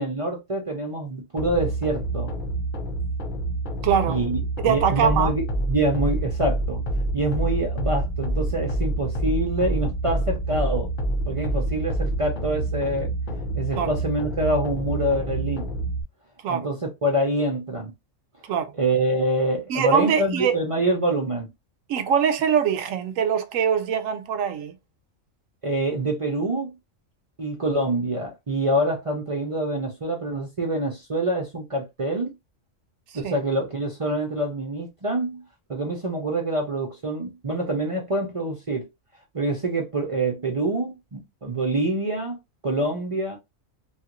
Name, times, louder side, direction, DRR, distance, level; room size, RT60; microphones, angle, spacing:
voice 1, 0.0-2.3 4.1-6.8 7.1-10.9 11.3-13.1 13.6-15.7 16.5-17.9 18.8-21.5 25.6-26.7 27.4-32.3 33.1-35.4 35.7-38.9 39.3-42.4 42.6-43.4, right 1 dB, 40° right, 0.4 m, -26 dB
sound 1, 1.4-16.0, right 1 dB, 45° left, 0.8 m, -27 dB
voice 2, 3.8-4.2 4.6-5.3 13.7-13.9 16.4-16.7 18.5-18.7 19.7-20.6 21.9-24.7 33.2-33.4, right 7 dB, 80° right, 1.0 m, -23 dB
3.1 x 2.4 x 2.9 m
omnidirectional pair, 1.4 m